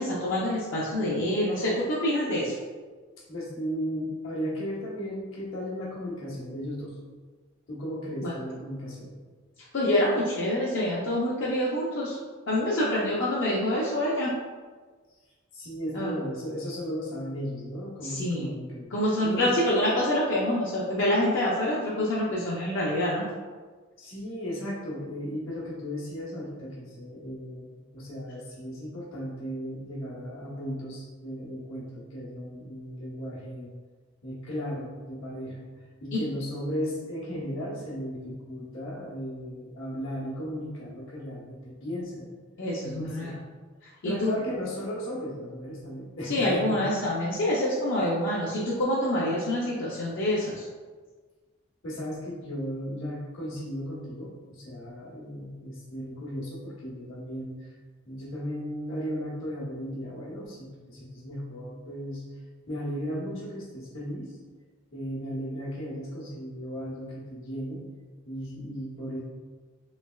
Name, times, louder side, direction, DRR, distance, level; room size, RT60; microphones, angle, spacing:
voice 1, 0.0-2.5 8.2-8.3 9.7-12.2 12.5-14.4 15.9-16.2 18.0-18.5 18.9-23.3 36.1-36.2 42.6-43.3 44.0-44.3 46.2-50.6, left 1 dB, 60° left, -6 dB, 0.5 m, -26 dB
voice 2, 3.3-6.9 7.7-9.2 12.9-13.0 15.5-18.9 19.2-19.5 24.0-33.7 34.2-35.7 36.0-42.3 42.8-43.4 44.0-46.9 51.8-57.7 58.0-62.2 62.7-64.3 64.9-67.8 68.2-69.2, equal, 80° left, -5 dB, 1.0 m, -35 dB
3.2 x 3.0 x 2.2 m, 1.4 s
head